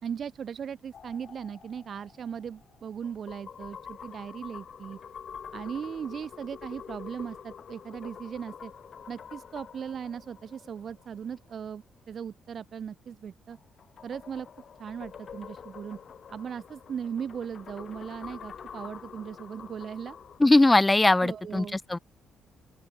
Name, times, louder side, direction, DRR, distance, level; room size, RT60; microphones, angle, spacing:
voice 1, 0.0-5.0 5.5-8.7 9.1-13.6 14.0-14.5 14.8-16.0 16.3-20.2 21.2-21.8, right 7 dB, 55° right, 1.3 m, -38 dB
sound 1, 0.9-11.5 13.5-20.4, left 7 dB, 50° left, 2.3 m, -46 dB
voice 2, 20.4-22.0, left 2 dB, 15° left, 0.3 m, -20 dB
open air
cardioid pair, 90°, 0 cm